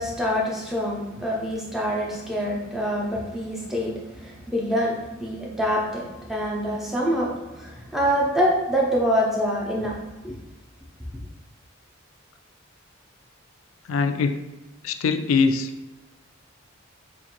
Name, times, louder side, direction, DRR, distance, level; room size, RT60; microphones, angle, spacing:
voice 1, 0.0-10.4, equal, ahead, -3 dB, 0.5 m, -26 dB
voice 2, 13.9-14.5 14.8-15.7, left 4 dB, 75° left, 8 dB, 0.3 m, -22 dB
4.5 x 2.5 x 2.9 m, 1.1 s
head